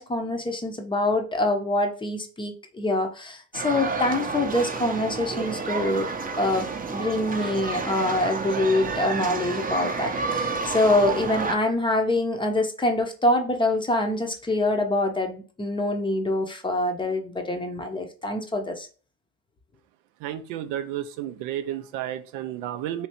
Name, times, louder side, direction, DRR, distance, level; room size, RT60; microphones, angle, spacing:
voice 1, 0.0-6.1 6.4-18.9, left 1 dB, 15° left, 4 dB, 0.7 m, -25 dB
sound 1, 3.5-11.5, right 4 dB, 25° right, 0.7 m, -30 dB
voice 2, 20.2-23.1, right 11 dB, 60° right, 10 dB, 0.5 m, -32 dB
3.3 x 2.9 x 2.8 m, 0.38 s
hypercardioid pair, 70°, 37 cm